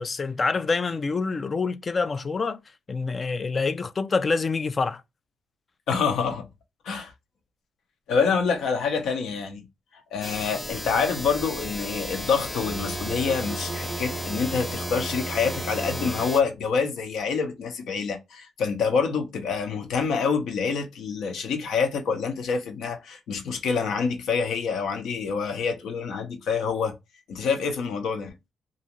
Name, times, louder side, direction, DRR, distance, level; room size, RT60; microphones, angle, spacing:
voice 1, 0.0-2.6 2.9-5.0, left 4 dB, 35° left, 0.3 m, -26 dB
voice 2, 5.9-6.5 6.8-7.1 8.1-9.7 10.1-26.9 27.3-28.3, left 5 dB, 75° left, 0.8 m, -26 dB
sound 1, 10.2-16.4, left 1 dB, 5° left, 0.8 m, -35 dB
Bowed string instrument, 12.6-16.6, right 4 dB, 35° right, 0.4 m, -35 dB
2.6 x 2.4 x 2.9 m
cardioid pair, 90°, 0 cm